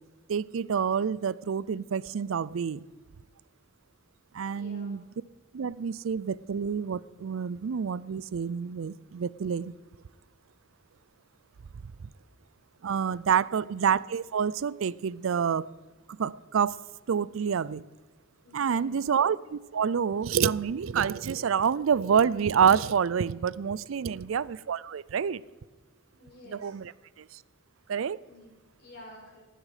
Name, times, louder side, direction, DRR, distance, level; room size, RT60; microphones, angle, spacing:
voice 1, 0.3-2.8 4.3-5.0 5.5-9.7 12.8-15.7 16.2-16.8 17.1-17.8 18.5-25.4 26.5-26.9 27.2-27.3 27.9-28.2, right 7 dB, 80° right, 20 dB, 0.4 m, -27 dB
voice 2, 4.5-5.0 18.4-19.1 23.9-24.3 26.2-26.7 28.3-29.4, left 1 dB, 55° left, -3 dB, 5.6 m, -52 dB
19.0 x 9.9 x 5.0 m, 1.3 s
head